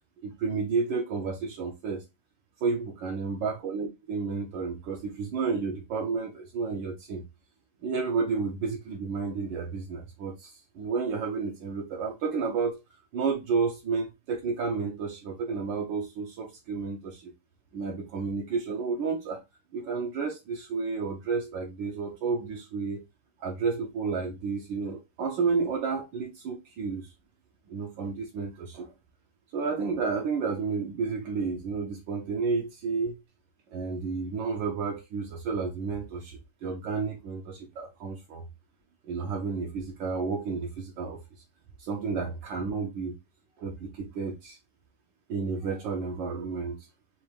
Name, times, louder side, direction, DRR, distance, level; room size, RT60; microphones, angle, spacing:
voice 1, 0.2-2.0 2.6-7.2 7.8-12.8 13.1-17.3 17.7-19.4 19.7-23.0 23.4-27.1 27.7-28.9 29.5-33.2 33.7-38.4 39.1-41.2 41.8-43.1 43.6-44.6 45.3-46.8, right 4 dB, 75° right, 1.5 m, -31 dB
4.4 x 2.6 x 3.1 m
omnidirectional pair, 2.2 m